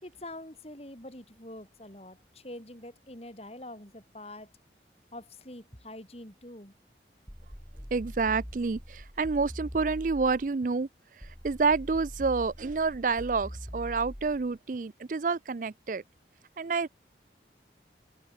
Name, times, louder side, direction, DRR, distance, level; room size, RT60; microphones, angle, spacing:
voice 1, 0.0-4.5 5.1-6.7, left 1 dB, 35° left, 4.9 m, -45 dB
sound 1, 7.3-10.5 11.2-14.5, equal, 5° right, 7.8 m, -43 dB
voice 2, 7.9-10.9 11.2-16.0 16.6-16.9, right 4 dB, 45° right, 0.4 m, -28 dB
head